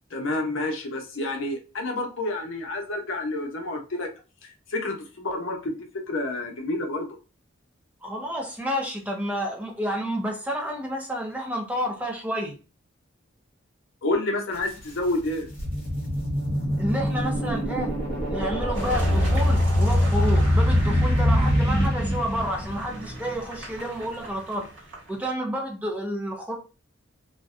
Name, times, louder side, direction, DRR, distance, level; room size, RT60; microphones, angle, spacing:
voice 1, 0.1-4.1 4.4-7.1 14.0-15.5, left 2 dB, 75° left, 0.6 m, -29 dB
voice 2, 8.0-12.6 16.8-17.9 18.3-24.7 25.1-26.5, equal, 5° right, 0.4 m, -30 dB
sound 1, 14.6-14.7 15.2-22.8, equal, 30° left, 0.9 m, -23 dB
Car passing by / Engine, 18.7-25.3, right 1 dB, 75° right, 1.3 m, -36 dB
2.5 x 2.1 x 2.3 m
head